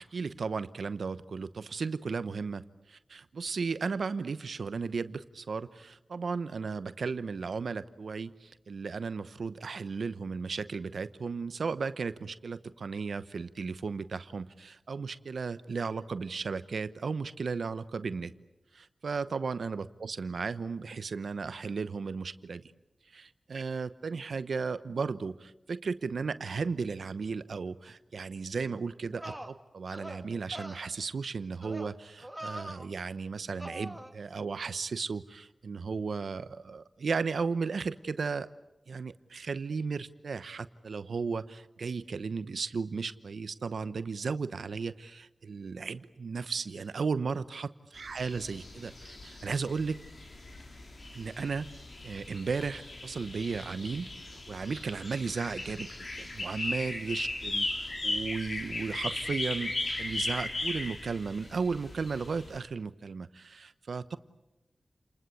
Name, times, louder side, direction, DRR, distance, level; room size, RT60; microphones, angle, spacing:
voice 1, 0.0-18.3 18.7-22.6 23.1-38.5 38.9-50.0 51.1-55.9 56.2-59.7 60.0-64.2, right 5 dB, 80° right, 14 dB, 0.9 m, -35 dB
sound 1, 28.7-28.8 29.2-29.5 29.9-30.2 30.5-30.9 31.6-31.9 32.2-32.9 33.6-34.1, right 1 dB, 10° right, 2.3 m, -42 dB
sound 2, 48.0-62.6, left 2 dB, 60° left, 4.4 m, -37 dB
30.0 x 20.5 x 8.4 m, 0.98 s
cardioid pair, 40°, 0 cm